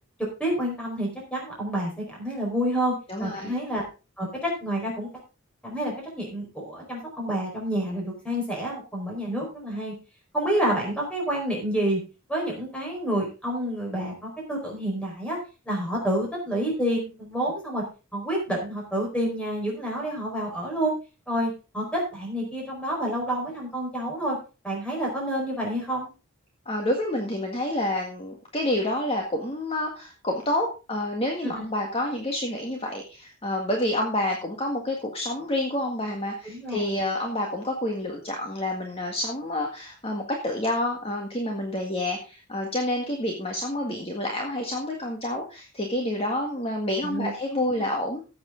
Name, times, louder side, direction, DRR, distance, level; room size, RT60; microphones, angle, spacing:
voice 1, 0.4-3.8 4.2-5.1 5.6-9.9 10.3-12.0 12.3-15.4 15.6-17.8 18.1-20.9 21.3-24.4 24.6-26.1 31.4-31.6 36.4-36.8 47.0-47.3 47.7-47.8, right 1 dB, 5° left, -2 dB, 4.7 m, -28 dB
voice 2, 3.1-3.6 26.7-48.2, left 1 dB, 25° left, 1 dB, 1.8 m, -28 dB
15.0 x 8.1 x 3.8 m, 0.32 s
head